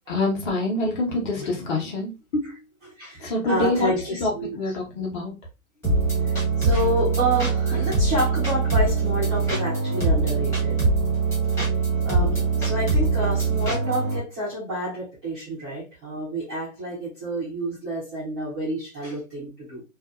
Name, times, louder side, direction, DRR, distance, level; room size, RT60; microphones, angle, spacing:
voice 1, 0.1-2.5 3.2-3.9 4.2-5.3, left 2 dB, 35° left, 1.0 m, -26 dB
voice 2, 2.8-4.7 6.2-10.8 12.0-19.8, right 1 dB, 10° right, 0.4 m, -29 dB
sound 1, 5.8-14.2, right 4 dB, 5° left, 0.9 m, -22 dB
2.7 x 2.3 x 2.3 m
hypercardioid pair, 140°, 43 cm